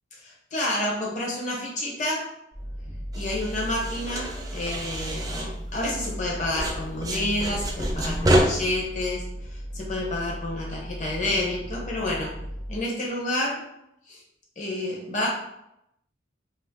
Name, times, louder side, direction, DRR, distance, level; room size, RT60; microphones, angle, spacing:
voice 1, 0.1-2.3 3.1-12.4 12.7-13.6 14.1-14.2 14.6-15.3, left 1 dB, 40° left, -2 dB, 0.7 m, -29 dB
sound 1, 2.5-12.8, equal, 70° left, 1.0 m, -36 dB
sound 2, 3.1-6.3 6.6-8.4, right 1 dB, 20° right, 0.3 m, -28 dB
2.5 x 2.4 x 3.5 m, 0.80 s
head